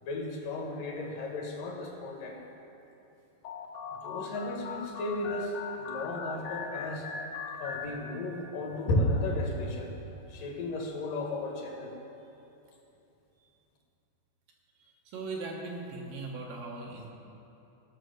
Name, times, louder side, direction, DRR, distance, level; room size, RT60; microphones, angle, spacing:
voice 1, 0.0-2.4 4.0-7.1 7.6-9.9 10.3-12.0, left 1 dB, 70° left, 0 dB, 2.8 m, -33 dB
sound 1, 3.4-8.6, left 5 dB, 90° left, 1.4 m, -40 dB
voice 2, 15.1-17.1, right 3 dB, 70° right, -1 dB, 2.8 m, -38 dB
15.5 x 6.0 x 6.5 m, 2.9 s
omnidirectional pair, 4.2 m